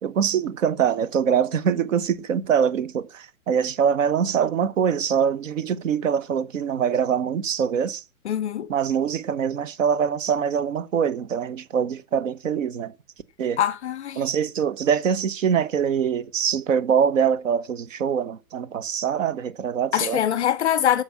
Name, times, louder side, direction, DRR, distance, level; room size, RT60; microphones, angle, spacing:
voice 1, 0.0-8.0 8.7-12.9 13.4-13.6 14.2-20.2, right 7 dB, 60° right, 1.2 m, -24 dB
voice 2, 8.2-8.7 13.6-14.2 19.9-21.0, left 10 dB, 50° left, 0.7 m, -23 dB
9.2 x 7.1 x 5.8 m
hypercardioid pair, 175°, 43 cm